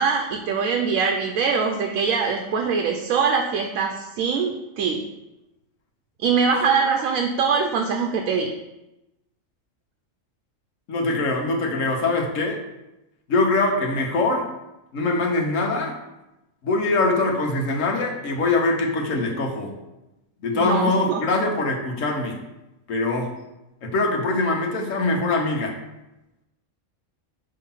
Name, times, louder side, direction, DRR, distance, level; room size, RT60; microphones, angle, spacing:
voice 1, 0.0-5.0 6.2-8.5 20.5-21.2, right 5 dB, 90° right, 3 dB, 1.0 m, -23 dB
voice 2, 10.9-12.6 13.3-14.5 14.9-15.9 16.6-19.7 20.4-22.4 22.9-23.3 23.8-25.7, left 2 dB, 70° left, 1 dB, 1.3 m, -23 dB
5.6 x 3.1 x 5.6 m, 0.96 s
omnidirectional pair, 1.4 m